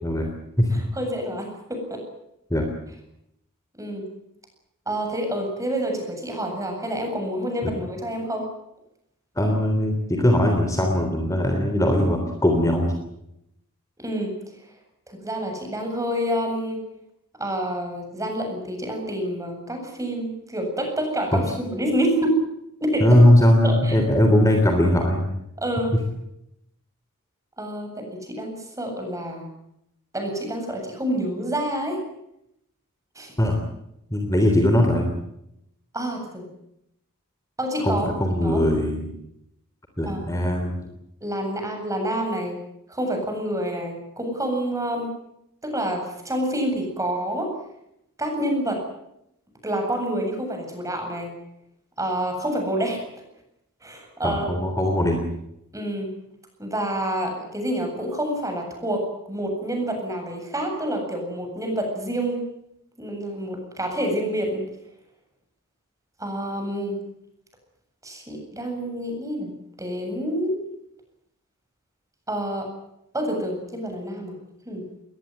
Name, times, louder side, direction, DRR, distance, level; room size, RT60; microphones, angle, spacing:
voice 1, 0.7-2.0 3.8-4.1 4.9-8.5 14.0-14.3 15.1-16.8 17.4-22.4 22.8-23.2 23.6-24.0 25.6-26.0 27.6-29.5 30.1-32.0 33.1-33.3 35.9-36.5 37.6-38.1 38.4-38.6 40.1-40.2 41.2-42.6 42.9-45.1 45.6-47.5 48.2-48.8 49.6-51.3 52.0-53.0 53.8-54.5 55.7-56.1 56.6-62.4 63.0-64.6 66.2-67.0 68.0-69.5 69.8-70.6 72.3-72.7 73.1-74.3 74.7-74.8, right 1 dB, 15° right, 3 dB, 8.0 m, -28 dB
voice 2, 9.4-12.9 21.3-21.4 23.0-25.4 33.4-33.6 34.1-35.2 37.8-39.1 40.0-40.8 54.2-55.3, left 1 dB, 15° left, 3 dB, 3.4 m, -20 dB
21.5 x 20.5 x 9.6 m, 0.81 s
head